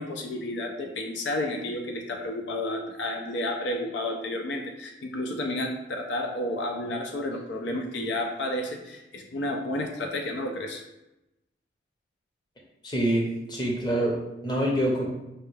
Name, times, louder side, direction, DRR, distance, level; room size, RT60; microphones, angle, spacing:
voice 1, 0.0-10.8, left 1 dB, 80° left, 3 dB, 0.5 m, -31 dB
voice 2, 12.8-15.1, right 1 dB, 25° left, -2 dB, 0.7 m, -26 dB
5.5 x 2.3 x 3.2 m, 0.94 s
head